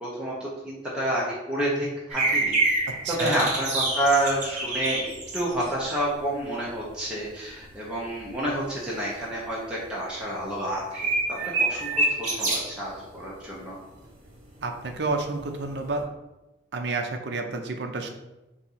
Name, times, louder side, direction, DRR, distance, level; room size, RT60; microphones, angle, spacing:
voice 1, 0.0-2.5 2.8-13.8, right 1 dB, 5° right, -7 dB, 0.8 m, -29 dB
sound 1, 2.1-6.3 6.7-6.8 7.2-7.6 8.2-8.7 9.1-9.2 9.5-9.6 10.7-12.8 14.7-16.0, right 2 dB, 40° right, 1.0 m, -27 dB
voice 2, 3.0-3.4 14.6-16.1 16.7-18.1, right 3 dB, 65° right, 4 dB, 0.5 m, -30 dB
4.2 x 2.7 x 4.1 m, 1.0 s
head